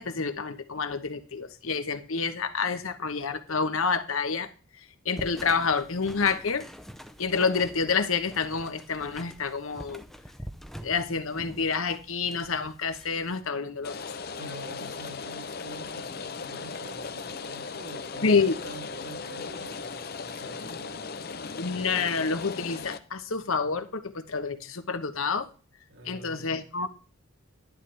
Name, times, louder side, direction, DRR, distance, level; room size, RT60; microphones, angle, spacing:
voice 1, 0.0-4.5 5.0-6.7 7.2-10.0 10.8-14.0 18.2-18.5 21.6-25.5 26.0-26.9, left 5 dB, 75° left, 1.0 m, -28 dB
sound 1, 5.2-13.4, equal, ahead, 0.6 m, -45 dB
Rain, 13.8-23.0, left 4 dB, 45° left, 0.6 m, -37 dB
voice 2, 14.4-21.2 25.9-26.6, right 1 dB, 70° right, 2.6 m, -46 dB
11.0 x 10.5 x 3.3 m
head